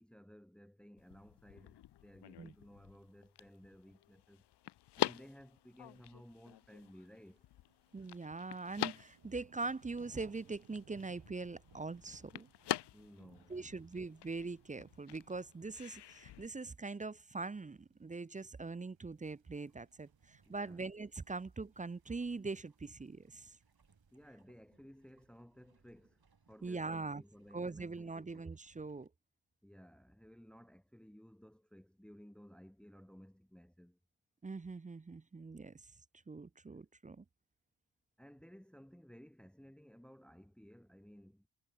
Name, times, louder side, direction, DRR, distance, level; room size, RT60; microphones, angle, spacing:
voice 1, 0.0-4.4 5.0-7.5 12.9-13.8 20.4-20.9 24.1-26.2 26.5-28.4 29.6-34.0 38.2-41.5, equal, ahead, 1.6 m, -57 dB
sound 1, 1.0-16.5, left 14 dB, 60° left, 0.5 m, -45 dB
sound 2, 6.8-24.3, right 8 dB, 65° right, 1.9 m, -67 dB
voice 2, 7.9-12.5 13.5-23.6 26.6-27.2 27.5-29.1 34.4-35.7 36.3-37.2, right 3 dB, 15° right, 0.4 m, -42 dB
sound 3, 19.7-29.1, right 5 dB, 50° right, 5.5 m, -72 dB
cardioid pair, 60°, 49 cm